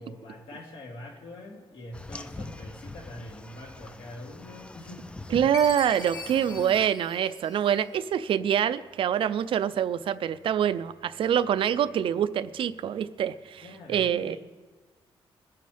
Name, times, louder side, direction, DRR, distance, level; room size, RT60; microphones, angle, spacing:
voice 1, 0.0-5.1 13.6-14.4, left 1 dB, 70° left, -1 dB, 2.9 m, -44 dB
sound 1, 1.9-6.9, left 2 dB, 10° left, 0.5 m, -43 dB
voice 2, 5.3-14.4, right 9 dB, 65° right, 14 dB, 0.4 m, -25 dB
Chime, 5.5-8.1, left 3 dB, 35° left, 1.8 m, -41 dB
21.0 x 9.2 x 3.4 m, 1.3 s
wide cardioid pair, 170°, 10 cm